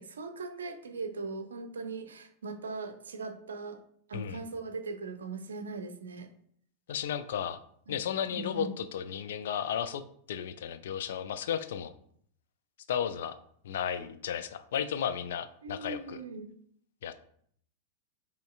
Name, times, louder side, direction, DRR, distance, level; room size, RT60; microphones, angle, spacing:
voice 1, 0.0-3.8 4.1-6.3 7.9-8.0 8.3-8.7 15.6-16.5, right 4 dB, 70° right, 7 dB, 0.5 m, -39 dB
voice 2, 6.9-7.6 7.9-10.0 10.3-11.9 12.9-13.3 13.6-16.2 17.0-17.1, left 9 dB, 60° left, 10 dB, 0.3 m, -34 dB
5.3 x 3.2 x 2.4 m, 0.63 s
figure-of-eight pair, 90°, 0 cm